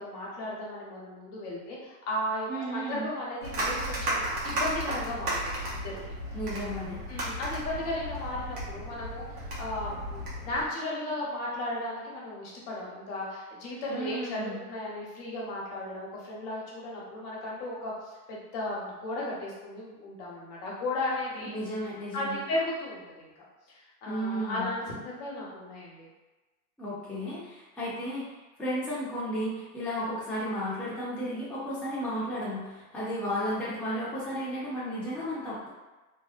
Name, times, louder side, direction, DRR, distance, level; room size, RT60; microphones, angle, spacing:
voice 1, 0.0-5.4 5.7-6.0 7.1-17.9 18.3-21.5 22.1-23.3 23.7-26.1, left 1 dB, 55° left, -5 dB, 1.0 m, -35 dB
voice 2, 2.5-3.0 6.3-7.0 13.9-14.6 21.4-22.4 24.1-24.7 26.8-35.7, equal, ahead, -9 dB, 0.8 m, -33 dB
sound 1, 3.4-10.6, right 1 dB, 85° right, 1.0 m, -34 dB
2.7 x 2.0 x 2.4 m, 1.2 s
hypercardioid pair, 95°, 46 cm